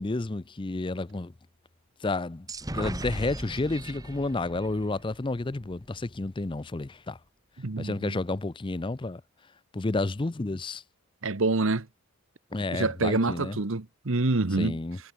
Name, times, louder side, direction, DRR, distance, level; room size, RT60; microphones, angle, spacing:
voice 1, 0.0-1.3 2.0-2.5 2.7-7.2 7.8-9.2 9.7-10.8 12.5-13.6 14.6-15.0, left 2 dB, 20° left, 0.5 m, -30 dB
sound 1, 2.5-6.2, right 1 dB, 15° right, 1.5 m, -38 dB
voice 2, 7.6-8.2 11.2-11.9 12.7-14.8, right 3 dB, 60° right, 1.1 m, -27 dB
head